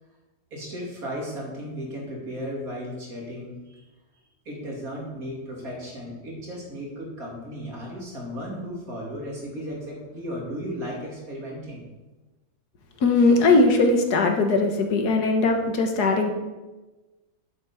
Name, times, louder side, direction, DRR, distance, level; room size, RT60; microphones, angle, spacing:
voice 1, 0.5-3.8 4.4-11.9, equal, 60° right, -3 dB, 3.4 m, -35 dB
voice 2, 13.0-16.3, left 3 dB, 75° left, 4 dB, 1.9 m, -20 dB
7.9 x 7.9 x 7.1 m, 1.2 s
omnidirectional pair, 1.7 m